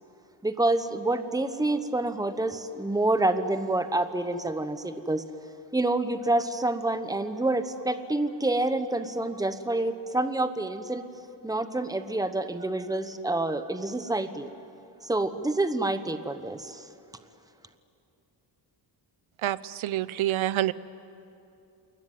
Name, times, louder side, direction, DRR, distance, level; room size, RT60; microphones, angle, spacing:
voice 1, 0.4-5.2 5.7-11.0 11.4-14.5 15.0-16.8, right 2 dB, 10° right, 10 dB, 1.0 m, -27 dB
voice 2, 19.4-20.7, right 13 dB, 80° right, 17 dB, 0.8 m, -27 dB
29.5 x 21.5 x 9.3 m, 2.7 s
wide cardioid pair, 165°, 47 cm